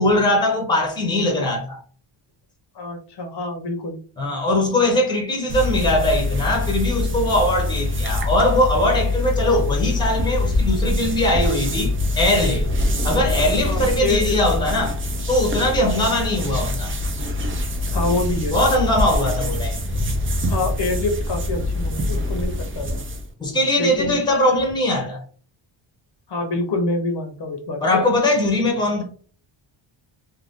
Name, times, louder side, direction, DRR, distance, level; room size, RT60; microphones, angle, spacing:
voice 1, 0.0-1.8 4.2-12.7 13.0-15.0 15.3-16.9 18.5-20.1 23.4-25.2 27.8-29.0, left 1 dB, 10° left, 0.7 m, -21 dB
voice 2, 2.7-4.0 13.7-14.6 17.9-18.6 20.5-23.0 23.8-24.2 26.3-28.0, left 2 dB, 55° left, 0.8 m, -26 dB
sound 1, 5.5-23.3, left 2 dB, 30° right, 0.4 m, -24 dB
2.6 x 2.2 x 3.5 m
wide cardioid pair, 150°, 48 cm